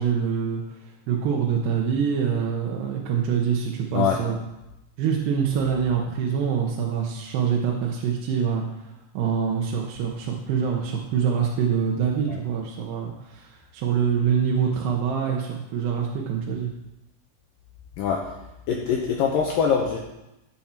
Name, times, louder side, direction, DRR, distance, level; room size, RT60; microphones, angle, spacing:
voice 1, 0.0-4.4 5.0-16.7, right 7 dB, 85° right, -1 dB, 3.1 m, -25 dB
voice 2, 18.7-20.0, left 7 dB, 70° left, -1 dB, 2.4 m, -23 dB
15.5 x 7.4 x 4.4 m, 0.94 s
omnidirectional pair, 4.7 m